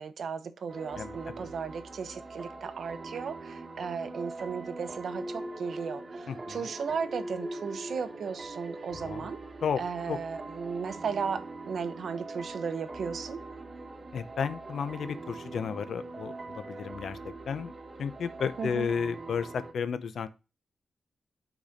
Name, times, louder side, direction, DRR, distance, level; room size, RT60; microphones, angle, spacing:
voice 1, 0.0-9.4 9.8-13.4 18.6-18.9, right 6 dB, 65° right, 0.8 m, -35 dB
sound 1, 0.7-19.7, right 2 dB, 30° right, 1.2 m, -42 dB
voice 2, 1.0-1.5 6.3-6.7 8.9-9.3 9.6-9.8 10.1-10.2 14.1-17.7 18.0-20.3, left 6 dB, 70° left, 0.7 m, -33 dB
6.0 x 4.2 x 5.1 m
wide cardioid pair, 140°, 0 cm